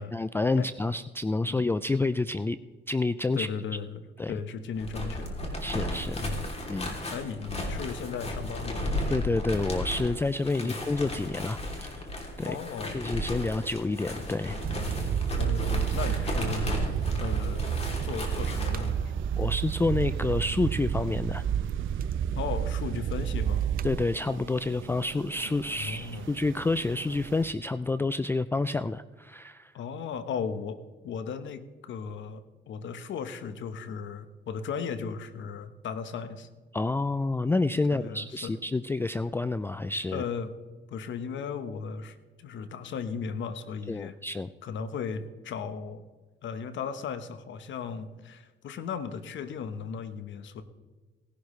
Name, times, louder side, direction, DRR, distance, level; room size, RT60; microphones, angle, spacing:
voice 1, 0.0-2.6 2.9-3.5 4.2-4.3 5.6-6.3 6.7-7.0 9.1-12.1 12.4-12.6 12.9-14.6 19.4-21.4 23.8-29.7 36.7-40.2 43.9-44.5, left 3 dB, 10° left, 14 dB, 0.3 m, -29 dB
voice 2, 3.3-4.0 4.3-5.4 6.2-6.5 7.1-8.9 10.6-10.8 12.4-13.0 15.4-16.9 17.2-17.7 18.0-19.3 22.4-23.7 25.8-26.3 29.7-30.8 31.0-36.5 37.9-38.5 40.1-40.5 40.9-44.2 44.6-46.0 46.4-50.6, left 6 dB, 70° left, 11 dB, 1.1 m, -36 dB
sound 1, 4.7-18.9, left 1 dB, 30° left, 3.1 m, -34 dB
sound 2, 14.4-27.5, right 8 dB, 75° right, 0.8 m, -46 dB
sound 3, 14.6-24.0, right 9 dB, 50° right, 0.5 m, -30 dB
18.0 x 11.5 x 3.2 m, 1.4 s
cardioid pair, 90°, 20 cm